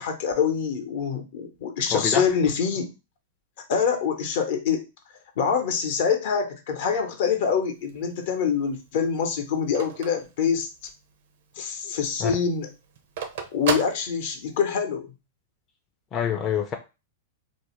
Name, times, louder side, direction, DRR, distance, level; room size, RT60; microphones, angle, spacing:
voice 1, 0.0-2.9 3.7-4.9 5.4-10.7 11.6-12.7 13.5-15.1, left 6 dB, 65° left, 5 dB, 0.7 m, -25 dB
voice 2, 1.9-2.2 12.2-12.3 16.1-16.8, left 8 dB, 30° left, 3 dB, 0.4 m, -25 dB
Telephone, 7.7-11.1 11.5-11.6 11.9-14.8, right 6 dB, 70° right, 0.5 m, -33 dB
2.5 x 2.0 x 2.9 m, 0.27 s
hypercardioid pair, 115°, 0 cm